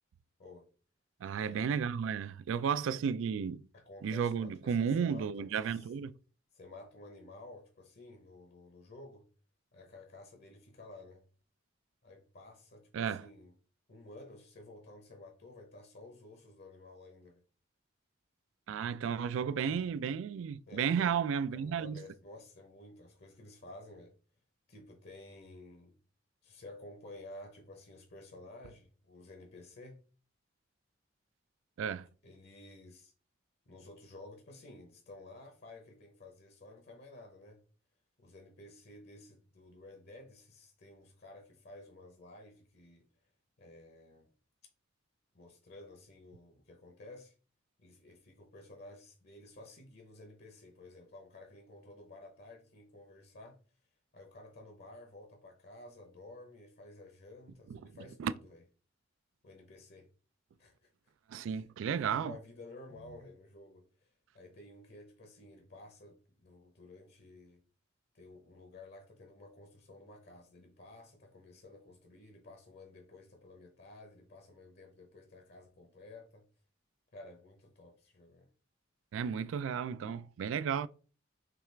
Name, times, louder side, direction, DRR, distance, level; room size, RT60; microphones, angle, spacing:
voice 1, 0.4-0.7 1.4-1.9 2.7-2.8 3.7-5.9 6.5-9.3 9.7-11.2 12.0-13.5 13.9-17.4 20.7-21.2 21.5-24.1 24.7-25.9 26.4-30.0 32.2-33.1 33.7-37.6 38.2-43.1 43.6-44.3 45.3-47.3 47.8-53.6 54.1-58.6 59.4-60.1 60.6-60.9 61.4-64.1 64.3-67.6 68.1-76.5 77.1-78.5, left 2 dB, 55° left, 0.8 m, -53 dB
voice 2, 1.2-3.6 4.0-6.1 12.9-13.3 18.7-22.0 31.8-32.1 57.7-57.9 58.2-58.3 61.3-62.4 79.1-80.9, right 7 dB, 75° right, 0.3 m, -33 dB
5.9 x 2.4 x 3.3 m
head